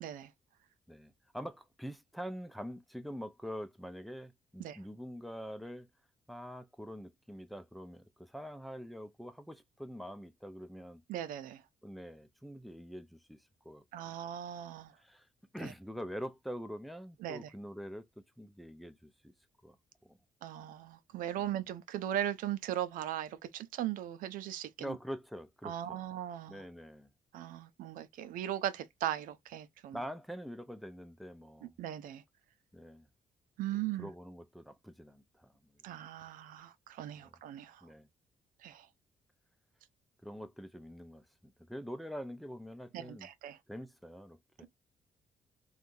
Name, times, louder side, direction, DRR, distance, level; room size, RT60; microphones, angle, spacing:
voice 1, 0.0-0.3 4.6-4.8 11.1-11.6 13.9-14.9 15.6-15.7 17.2-17.5 20.4-25.0 25.6-26.6 27.3-30.0 31.8-32.2 33.6-34.1 35.8-37.8 38.6-38.9 42.9-43.6, right 11 dB, 90° right, 0.5 m, -38 dB
voice 2, 0.9-5.9 6.3-11.0 11.8-13.8 15.0-15.3 15.5-19.3 19.6-19.8 20.0-20.2 21.4-21.6 24.8-26.1 26.5-27.1 29.9-31.7 32.7-33.1 34.0-35.5 37.2-37.3 37.8-38.1 40.2-43.3 43.7-44.7, equal, ahead, 0.6 m, -45 dB
3.5 x 2.4 x 2.6 m
cardioid pair, 80°, 14 cm